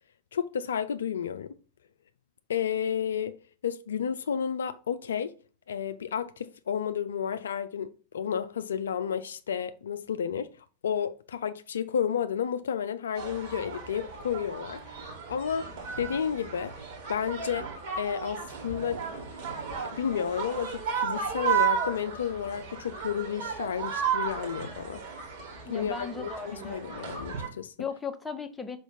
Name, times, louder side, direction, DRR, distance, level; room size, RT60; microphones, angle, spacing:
voice 1, 0.3-1.5 2.5-3.4 3.6-5.3 5.7-10.5 10.8-15.7 16.0-16.7 17.1-17.7 18.0-19.0 19.9-25.0 25.7-27.7, left 8 dB, 65° left, 0.3 m, -31 dB
sound 1, 13.1-27.5, right 7 dB, 50° right, 2.5 m, -34 dB
voice 2, 25.6-27.2 27.8-28.8, left 5 dB, 10° left, 0.7 m, -37 dB
5.6 x 4.4 x 4.3 m
figure-of-eight pair, 90°, 0 cm